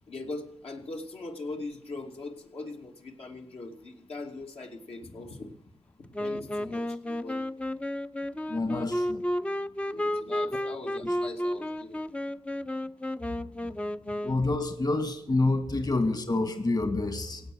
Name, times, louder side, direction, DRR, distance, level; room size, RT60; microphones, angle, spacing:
voice 1, 0.1-5.5 6.0-7.5 9.9-12.0, left 2 dB, 65° left, 1 dB, 2.5 m, -41 dB
Wind instrument woodwind instrument, 6.1-14.5, left 1 dB, 10° left, 0.6 m, -32 dB
voice 2, 8.5-9.2 14.2-17.4, left 2 dB, 40° left, 8 dB, 2.2 m, -27 dB
17.0 x 8.1 x 7.7 m, 0.77 s
cardioid pair, 70°, 11 cm